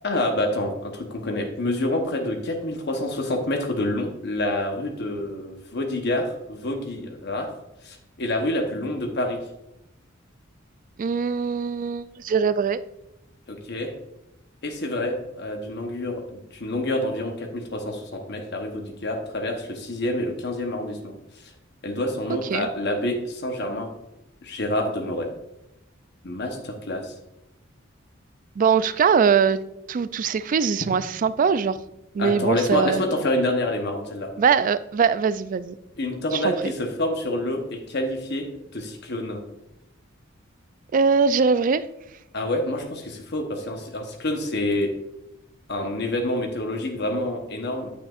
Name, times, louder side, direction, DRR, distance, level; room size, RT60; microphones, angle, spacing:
voice 1, 0.0-7.5 7.8-9.4 13.5-13.9 14.6-21.1 21.8-23.9 24.4-25.3 26.2-27.1 32.2-34.3 36.0-38.5 38.7-39.4 42.3-44.9 45.7-47.9, left 1 dB, 55° left, 3 dB, 1.0 m, -27 dB
voice 2, 11.0-12.8 22.3-22.7 28.6-29.6 29.9-31.8 32.1-33.0 34.4-35.8 36.3-36.7 40.9-41.8, right 6 dB, 40° right, 15 dB, 0.3 m, -22 dB
9.1 x 8.4 x 2.4 m, 0.90 s
head